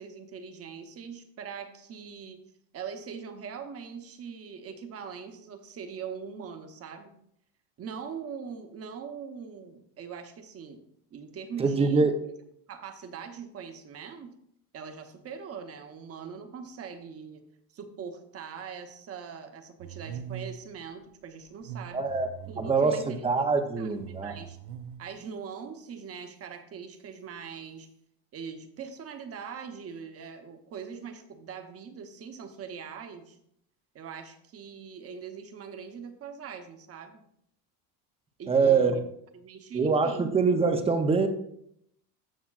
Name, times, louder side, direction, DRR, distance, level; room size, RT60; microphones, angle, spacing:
voice 1, 0.0-2.4 2.7-7.1 7.8-10.8 11.1-12.0 12.7-14.4 14.7-17.5 17.7-22.1 22.5-23.3 23.6-24.6 25.0-27.9 28.3-33.4 33.9-37.2 38.4-39.0 39.3-40.3, right 6 dB, 30° right, 7 dB, 0.9 m, -42 dB
voice 2, 11.6-12.2 21.9-22.3 22.6-24.3 38.5-39.0 39.7-41.3, right 4 dB, 15° right, 7 dB, 0.6 m, -24 dB
sound 1, 19.8-20.7 21.5-22.8 23.7-25.1, right 8 dB, 65° right, 0.8 m, -42 dB
15.0 x 5.7 x 2.4 m, 0.73 s
cardioid pair, 140°, 47 cm